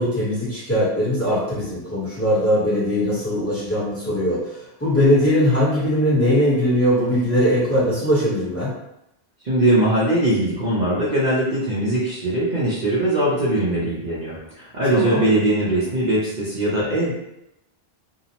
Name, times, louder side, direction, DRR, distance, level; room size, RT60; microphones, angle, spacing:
voice 1, 0.0-4.4 4.8-8.7 14.9-15.2, equal, 15° left, -10 dB, 0.9 m, -20 dB
voice 2, 9.4-17.1, right 1 dB, 50° right, -8 dB, 0.7 m, -21 dB
2.7 x 2.0 x 2.8 m, 0.85 s
omnidirectional pair, 1.0 m